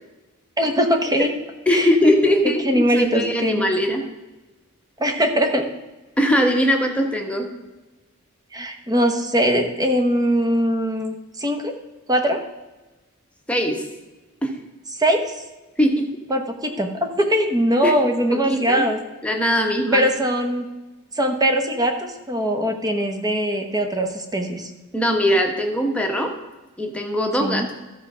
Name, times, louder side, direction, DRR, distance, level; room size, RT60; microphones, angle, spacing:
voice 1, 0.6-1.3 1.7-2.1 2.6-3.7 5.0-5.7 8.5-11.7 12.1-12.4 14.9-15.4 16.3-19.0 19.9-20.6 21.2-24.7 27.4-27.7, equal, 15° right, 5 dB, 1.0 m, -21 dB
voice 2, 1.7-4.0 6.2-7.5 13.5-13.8 14.4-14.5 15.8-16.1 17.8-17.9 18.3-18.9 19.2-20.1 24.9-26.3 26.8-27.7, equal, 5° left, 2 dB, 1.1 m, -20 dB
13.0 x 4.7 x 6.1 m, 1.1 s
head